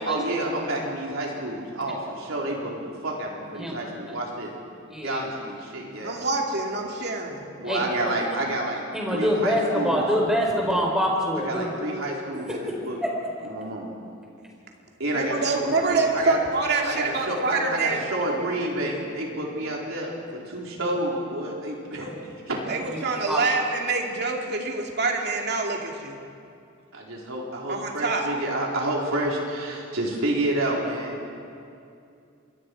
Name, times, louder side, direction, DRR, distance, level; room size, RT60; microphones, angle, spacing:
voice 1, 0.1-4.5 5.0-6.1 7.6-10.1 11.4-13.0 13.4-13.9 15.0-16.4 16.8-22.6 26.9-31.3, right 1 dB, 75° right, -2 dB, 4.4 m, -29 dB
voice 2, 4.9-5.2 7.7-7.8 8.9-11.7 12.7-12.8 13.0-13.1 23.3-23.4, equal, 5° right, -2 dB, 4.3 m, -24 dB
voice 3, 6.0-7.4 15.1-18.0 22.7-26.2 27.7-28.3, right 3 dB, 55° right, 1 dB, 2.5 m, -26 dB
27.5 x 22.5 x 4.8 m, 2.5 s
head